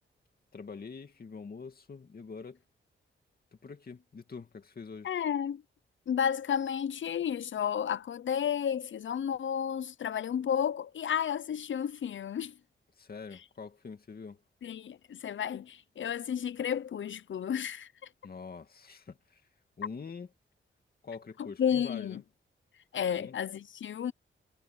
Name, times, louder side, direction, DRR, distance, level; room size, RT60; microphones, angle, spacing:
voice 1, 0.5-2.6 3.6-5.1 13.0-14.4 18.2-19.4 19.8-20.3 21.0-22.2 23.1-23.3, left 5 dB, 45° left, 2.5 m, -45 dB
voice 2, 5.0-5.6 6.1-12.6 14.6-17.9 21.4-22.2 22.9-24.1, left 8 dB, 65° left, 0.7 m, -32 dB
wide cardioid pair, 100°, 21 cm